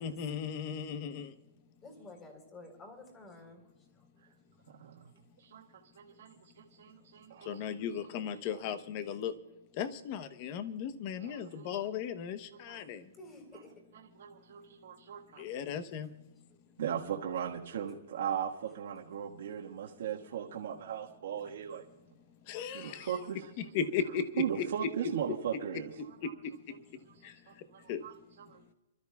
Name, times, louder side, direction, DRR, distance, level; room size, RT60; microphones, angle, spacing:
voice 1, 0.0-1.3 7.5-9.3 9.8-13.0 15.4-16.1 22.5-23.1 23.6-24.7 27.9-28.0, left 7 dB, 40° left, 11 dB, 0.9 m, -36 dB
voice 2, 1.8-3.7 4.0-4.1 6.8-6.9 13.2-13.7, left 2 dB, 20° left, 2 dB, 4.0 m, -51 dB
voice 3, 4.7-5.1 5.4-7.7 11.2-11.7 12.5-12.8 14.1-15.4 16.8-21.8 22.7-23.5 24.4-25.9 27.5-28.1 28.5-28.7, right 8 dB, 70° right, -2 dB, 1.6 m, -38 dB
28.5 x 13.0 x 2.4 m, 1.0 s
hypercardioid pair, 155°, 0 cm